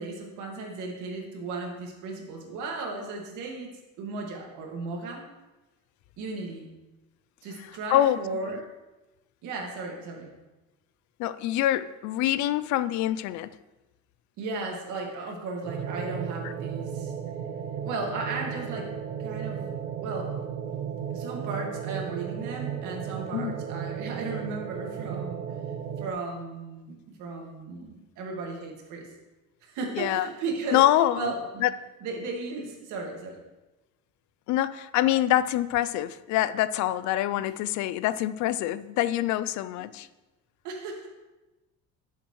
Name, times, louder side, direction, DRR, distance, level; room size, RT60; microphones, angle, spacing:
voice 1, 0.0-3.7 4.0-5.3 6.2-6.7 7.4-8.6 9.4-10.4 14.4-17.1 17.8-20.4 21.1-25.6 26.0-29.1 29.6-30.8 31.1-31.7 32.0-33.4 37.4-37.5 39.7-39.9 40.6-41.1, right 3 dB, 70° right, 2.0 m, -35 dB
voice 2, 7.9-8.2 11.2-13.5 23.3-23.6 30.0-30.3 30.7-31.3 31.6-31.7 34.5-40.1, left 13 dB, 65° left, 0.4 m, -25 dB
sound 1, 15.6-26.1, right 8 dB, 90° right, 1.0 m, -34 dB
11.0 x 7.3 x 3.1 m
cardioid pair, 140°, 31 cm